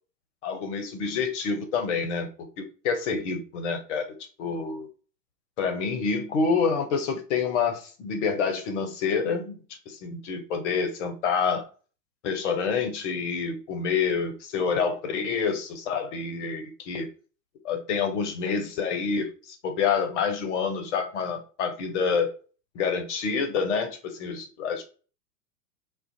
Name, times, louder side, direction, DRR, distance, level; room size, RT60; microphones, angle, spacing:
voice 1, 0.4-2.3 2.6-4.1 4.4-4.9 5.6-9.6 9.9-11.6 12.2-17.1 17.6-22.3 22.7-24.8, left 5 dB, 45° left, 0.7 m, -27 dB
2.4 x 2.1 x 2.6 m
figure-of-eight pair, 95°, 49 cm